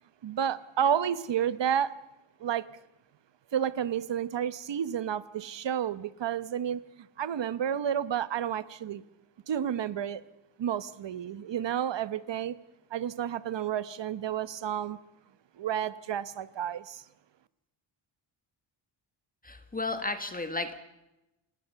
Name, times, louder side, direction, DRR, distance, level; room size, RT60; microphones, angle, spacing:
voice 1, 0.2-1.9 2.4-2.7 3.5-6.8 7.2-9.0 9.5-10.2 10.6-12.6 12.9-15.0 15.6-17.0, right 9 dB, 60° right, 1.0 m, -31 dB
voice 2, 19.4-20.8, left 2 dB, 15° left, 1.5 m, -33 dB
28.0 x 19.5 x 6.9 m
wide cardioid pair, 175°, 49 cm